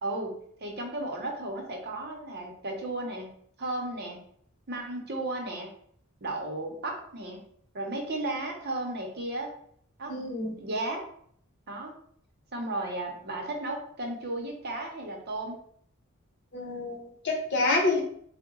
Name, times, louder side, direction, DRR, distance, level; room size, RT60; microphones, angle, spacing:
voice 1, 0.0-4.2 4.7-5.7 6.2-7.4 7.7-9.5 10.0-10.1 10.6-11.0 11.7-11.9 12.5-15.6, right 2 dB, 50° right, 1 dB, 0.7 m, -34 dB
voice 2, 10.1-10.5 16.5-18.0, left 2 dB, 55° left, -1 dB, 0.9 m, -27 dB
3.9 x 2.2 x 3.6 m, 0.64 s
head